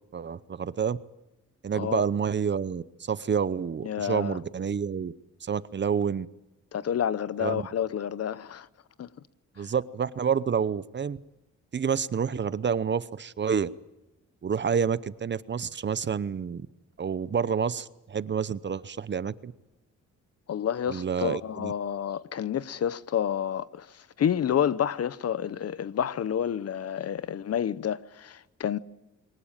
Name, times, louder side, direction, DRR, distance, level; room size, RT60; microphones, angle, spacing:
voice 1, 0.1-1.0 1.6-5.1 5.4-6.3 7.4-7.6 9.6-11.2 11.7-13.7 14.4-16.7 17.0-19.5 20.9-21.7, right 7 dB, 35° right, 0.8 m, -28 dB
voice 2, 3.8-4.4 6.7-8.7 9.0-9.1 20.5-23.9 24.2-28.8, left 9 dB, 55° left, 0.8 m, -29 dB
23.5 x 19.5 x 8.9 m
cardioid pair, 110°, 30 cm